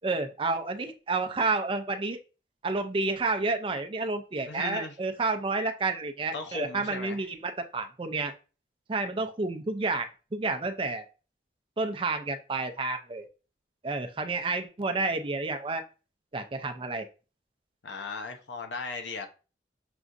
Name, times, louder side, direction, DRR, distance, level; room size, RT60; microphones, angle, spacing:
voice 1, 0.0-2.2 2.6-8.3 8.9-11.0 11.8-13.3 13.8-15.8 16.3-17.1, right 3 dB, 30° right, 0.4 m, -30 dB
voice 2, 4.5-5.0 6.3-7.2 17.8-19.3, left 4 dB, 80° left, 0.7 m, -37 dB
6.0 x 2.4 x 2.6 m
head